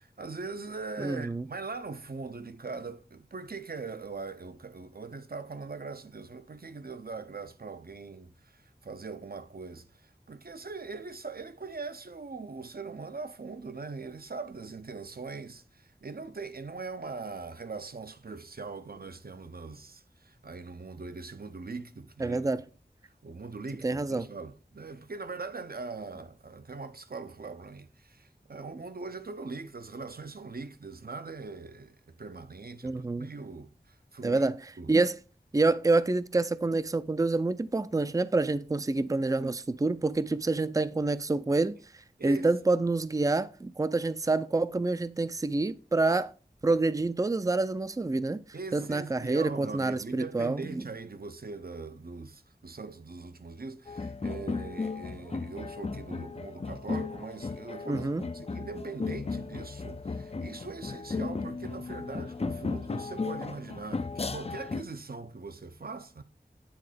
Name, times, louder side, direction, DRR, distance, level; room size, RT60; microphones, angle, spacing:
voice 1, 0.0-22.5 23.2-34.5 34.8-34.9 42.2-42.5 48.5-58.1 58.3-66.2, right 4 dB, 60° right, 0.7 m, -41 dB
voice 2, 1.0-1.4 22.2-22.6 23.8-24.3 32.8-33.3 34.2-34.6 34.9-35.2 35.5-41.8 42.2-46.3 46.6-48.4 48.7-50.8 57.9-58.2, right 3 dB, 20° right, 0.4 m, -27 dB
sound 1, 53.9-64.8, left 4 dB, 35° left, 0.4 m, -35 dB
8.8 x 3.8 x 5.0 m
wide cardioid pair, 50°, 17 cm